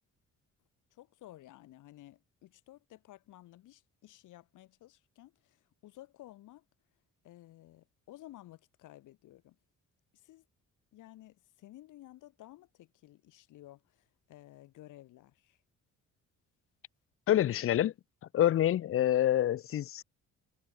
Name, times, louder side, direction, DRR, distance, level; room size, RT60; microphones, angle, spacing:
voice 1, 0.9-6.6 7.2-9.6 10.1-10.4 10.9-15.6, left 15 dB, 85° left, 2.1 m, -54 dB
voice 2, 17.3-17.9 18.3-20.0, left 12 dB, 45° left, 0.5 m, -27 dB
cardioid pair, 90°, 30 cm